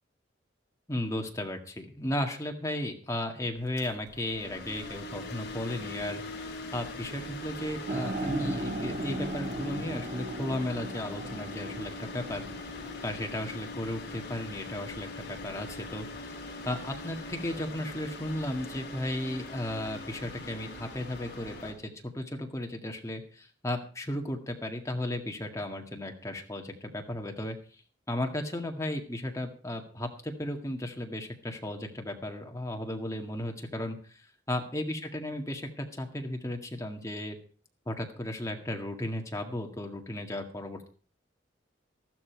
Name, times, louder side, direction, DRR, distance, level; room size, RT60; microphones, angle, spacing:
voice 1, 0.9-12.4 13.0-27.6 28.1-37.4 37.9-40.9, left 1 dB, 15° left, 3 dB, 1.9 m, -35 dB
sound 1, 3.6-21.7, left 2 dB, 55° left, 4.7 m, -41 dB
sound 2, 7.9-14.0, right 1 dB, 45° right, 1.2 m, -37 dB
13.5 x 12.5 x 4.6 m, 0.40 s
head